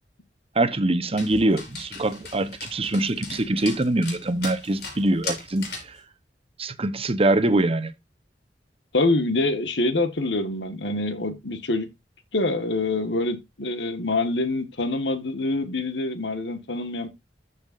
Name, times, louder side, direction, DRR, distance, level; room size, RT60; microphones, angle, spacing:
voice 1, 0.5-5.7 6.6-7.9, right 2 dB, 35° right, 0.9 m, -23 dB
Dog, 1.2-6.0, left 4 dB, 65° left, 5.5 m, -38 dB
voice 2, 8.9-11.9 12.3-17.1, left 2 dB, 80° left, 1.6 m, -25 dB
14.0 x 5.7 x 2.6 m
head